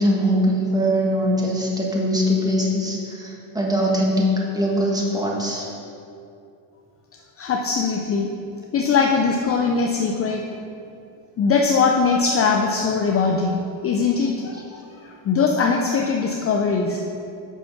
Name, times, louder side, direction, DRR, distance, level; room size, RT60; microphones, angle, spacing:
voice 1, 0.0-5.7, equal, 10° right, -2 dB, 1.6 m, -22 dB
voice 2, 7.4-8.3 8.7-10.4 11.4-17.0, left 5 dB, 30° left, 1 dB, 0.6 m, -21 dB
8.0 x 5.9 x 5.8 m, 2.6 s
cardioid pair, 125°, 44 cm